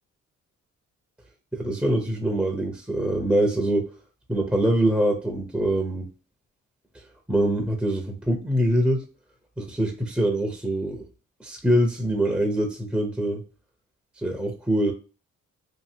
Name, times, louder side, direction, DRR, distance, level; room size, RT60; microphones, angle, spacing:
voice 1, 1.5-3.9 4.3-6.1 7.3-9.0 9.6-11.0 11.4-13.4 14.2-14.9, right 1 dB, 5° right, 2 dB, 0.6 m, -24 dB
2.8 x 2.6 x 2.6 m, 0.34 s
cardioid pair, 90°, 30 cm